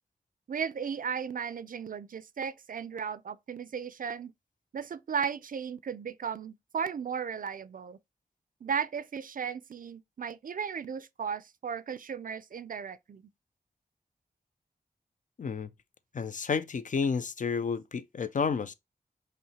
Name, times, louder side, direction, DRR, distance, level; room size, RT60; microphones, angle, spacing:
voice 1, 0.5-4.3 4.7-8.0 8.6-13.2, right 7 dB, 55° right, 0.4 m, -35 dB
voice 2, 15.4-15.7 16.1-18.7, left 5 dB, 50° left, 0.4 m, -31 dB
5.5 x 2.1 x 2.8 m
cardioid pair, 45°, 16 cm